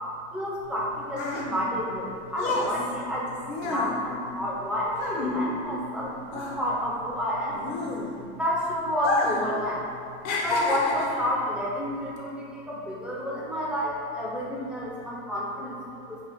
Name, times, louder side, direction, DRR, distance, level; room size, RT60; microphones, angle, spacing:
voice 1, 0.3-7.6 8.3-9.8 10.4-16.2, equal, 5° right, -6 dB, 0.3 m, -30 dB
sound 1, 0.7-6.0 6.3-8.4 8.9-9.5 9.8-11.3 12.0-12.2, left 2 dB, 50° left, 0.5 m, -29 dB
2.6 x 2.2 x 3.4 m, 2.4 s
supercardioid pair, 125°, 31 cm